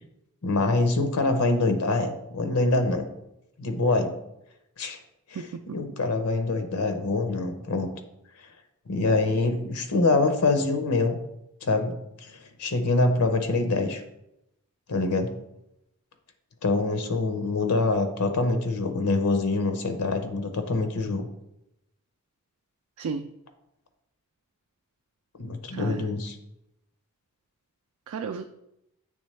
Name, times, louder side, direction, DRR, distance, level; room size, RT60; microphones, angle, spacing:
voice 1, 0.4-3.1 3.6-4.1 4.8-5.0 5.3-7.9 8.9-11.2 11.6-14.0 14.9-15.3 16.6-21.3 25.4-26.4, left 3 dB, 85° left, 7 dB, 0.7 m, -25 dB
voice 2, 5.3-5.8 23.0-23.3 25.7-26.1 28.1-28.5, right 5 dB, 80° right, 6 dB, 0.4 m, -34 dB
8.6 x 3.4 x 3.2 m, 0.84 s
head